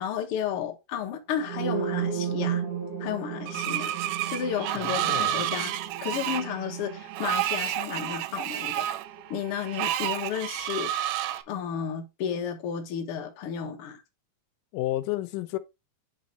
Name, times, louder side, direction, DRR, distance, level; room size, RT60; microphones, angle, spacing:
voice 1, 0.0-2.6 3.0-4.0 4.3-5.7 6.0-8.9 9.3-11.1 11.5-14.0, left 8 dB, 60° left, 1.6 m, -32 dB
sound 1, 1.4-9.2, right 8 dB, 65° right, 1.9 m, -34 dB
Screech, 3.5-11.4, right 12 dB, 85° right, 2.1 m, -30 dB
voice 2, 4.8-5.3 14.7-15.6, left 16 dB, 85° left, 2.2 m, -31 dB
9.0 x 3.1 x 4.0 m
omnidirectional pair, 3.7 m